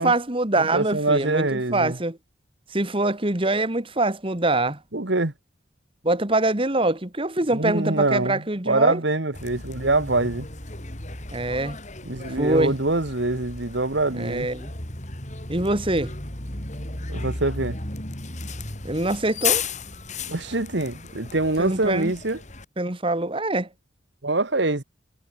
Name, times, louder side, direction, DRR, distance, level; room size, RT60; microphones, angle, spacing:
voice 1, 0.0-2.2 2.7-4.8 6.0-9.0 11.3-11.8 12.4-12.8 14.1-14.7 15.5-16.1 18.8-19.6 21.6-22.1 22.8-23.7, right 2 dB, 30° right, 1.9 m, -24 dB
voice 2, 0.7-2.0 4.9-5.3 7.5-10.5 12.1-14.5 17.1-17.8 20.3-22.4 24.2-24.8, right 2 dB, 65° right, 1.8 m, -24 dB
Bus, 9.3-22.6, left 4 dB, 40° left, 4.3 m, -34 dB
head